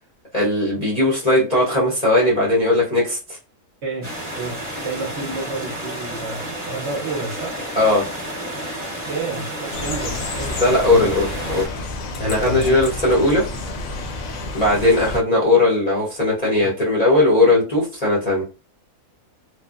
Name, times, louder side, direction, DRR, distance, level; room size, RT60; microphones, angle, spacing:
voice 1, 0.3-3.4 7.8-8.0 10.6-11.8 12.2-13.4 14.5-18.4, left 2 dB, 40° left, -7 dB, 0.6 m, -18 dB
voice 2, 3.8-7.6 9.0-11.1 12.5-12.8 16.6-16.7, right 3 dB, 60° right, -1 dB, 0.8 m, -30 dB
sound 1, 4.0-11.7, right 1 dB, 15° right, 0.9 m, -31 dB
sound 2, 9.7-15.2, left 2 dB, 70° left, 1.0 m, -30 dB
3.2 x 2.0 x 2.3 m, 0.33 s
omnidirectional pair, 1.6 m